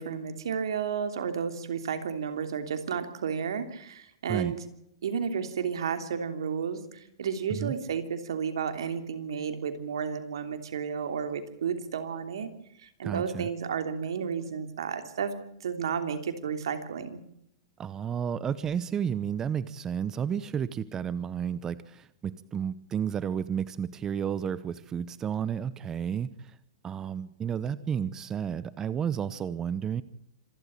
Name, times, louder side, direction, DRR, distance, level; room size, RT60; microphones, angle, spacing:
voice 1, 0.0-4.6 5.0-12.5 12.8-17.2, right 7 dB, 80° right, 8 dB, 3.1 m, -32 dB
voice 2, 13.0-13.5 17.8-26.6 26.8-30.0, right 8 dB, 20° right, 16 dB, 0.8 m, -32 dB
26.5 x 12.0 x 8.8 m, 0.74 s
hypercardioid pair, 130°, 2 cm